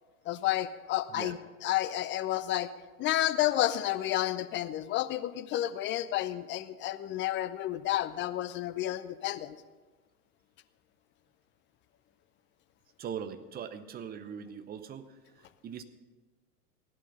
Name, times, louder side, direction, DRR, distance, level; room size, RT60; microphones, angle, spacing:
voice 1, 0.3-1.4 1.6-2.7 3.0-9.6, left 13 dB, 25° left, 13 dB, 0.6 m, -30 dB
voice 2, 13.0-15.8, right 7 dB, 20° right, 11 dB, 0.8 m, -41 dB
16.0 x 11.5 x 5.4 m, 1.3 s
hypercardioid pair, 100°, 47 cm